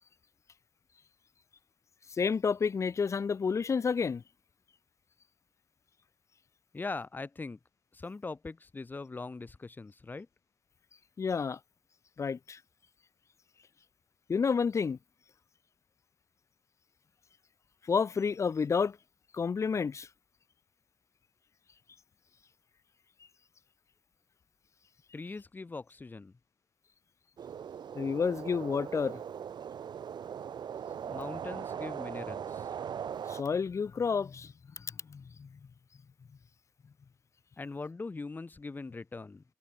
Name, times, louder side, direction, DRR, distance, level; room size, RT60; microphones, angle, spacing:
voice 1, 2.2-4.2 11.2-11.6 12.2-12.6 14.3-15.0 17.9-19.0 19.3-20.1 27.9-29.2 33.3-35.5, left 5 dB, 40° left, 1.5 m, -30 dB
voice 2, 6.7-7.6 7.9-10.3 25.1-26.3 31.0-32.7 37.6-39.4, left 3 dB, 25° left, 6.2 m, -41 dB
sound 1, 27.4-33.4, right 8 dB, 80° right, 3.8 m, -40 dB
wide cardioid pair, 175°, 7 cm